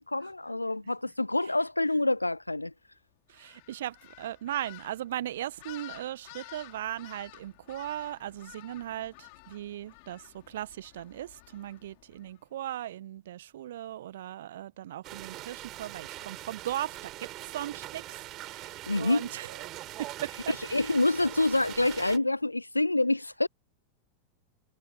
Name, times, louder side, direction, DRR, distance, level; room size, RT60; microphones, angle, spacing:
voice 1, 0.0-2.7 18.9-19.2 20.7-23.5, left 2 dB, 85° left, 0.4 m, -27 dB
sound 1, 3.3-12.4, left 33 dB, 45° left, 5.0 m, -52 dB
voice 2, 3.3-19.7 20.0-21.0, right 12 dB, 60° right, 1.5 m, -38 dB
sound 2, 15.0-22.2, right 16 dB, 35° right, 5.4 m, -42 dB
figure-of-eight pair, 90°, 0 cm